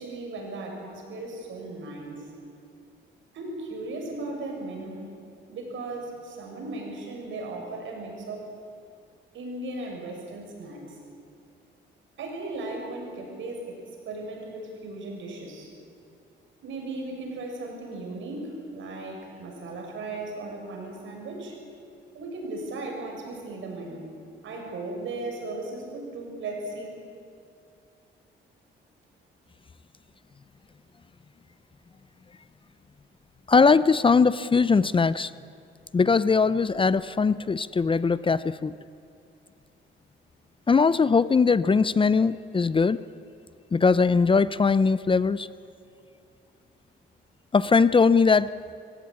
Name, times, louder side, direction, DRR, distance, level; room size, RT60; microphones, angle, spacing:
voice 1, 0.0-2.3 3.3-5.1 5.5-8.5 9.3-11.0 12.2-13.8 14.0-15.7 16.6-21.5 22.1-24.1 24.4-26.9, right 2 dB, 75° right, 1 dB, 6.8 m, -36 dB
voice 2, 33.5-35.3 35.9-38.8 40.7-43.0 43.7-45.5 47.5-48.5, left 4 dB, 25° left, 16 dB, 0.6 m, -20 dB
25.0 x 16.5 x 9.7 m, 2.6 s
cardioid pair, 90°, 20 cm